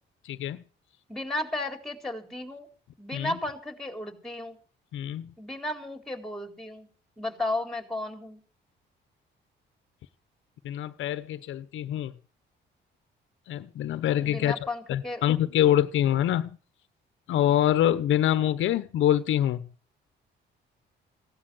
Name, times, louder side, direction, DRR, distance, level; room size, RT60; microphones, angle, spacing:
voice 1, 0.2-0.6 3.1-3.3 4.9-5.3 10.6-12.1 13.5-14.6 14.9-16.5 17.3-19.7, left 11 dB, 80° left, 1.0 m, -25 dB
voice 2, 1.1-2.7 3.0-4.6 5.4-6.9 7.2-8.4 14.2-15.2, left 2 dB, ahead, 4.1 m, -34 dB
17.0 x 12.0 x 6.4 m
cardioid pair, 90°, 20 cm